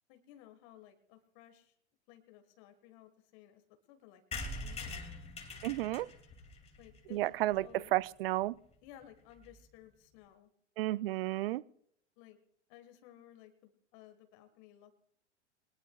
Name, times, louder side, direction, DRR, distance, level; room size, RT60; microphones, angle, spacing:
voice 1, 0.1-1.7 2.1-3.6 3.9-4.9 6.8-7.3 7.6-7.9 8.8-10.5 12.2-12.4 12.7-15.0, left 12 dB, 45° left, 1.6 m, -57 dB
sound 1, 4.3-8.0 8.4-8.5 8.7-8.8 9.0-9.1 9.3-9.6, left 2 dB, 15° left, 2.5 m, -44 dB
voice 2, 5.6-6.1 7.1-8.6 10.8-11.6, right 16 dB, 55° right, 0.5 m, -32 dB
22.5 x 19.0 x 2.3 m
figure-of-eight pair, 95°, 36 cm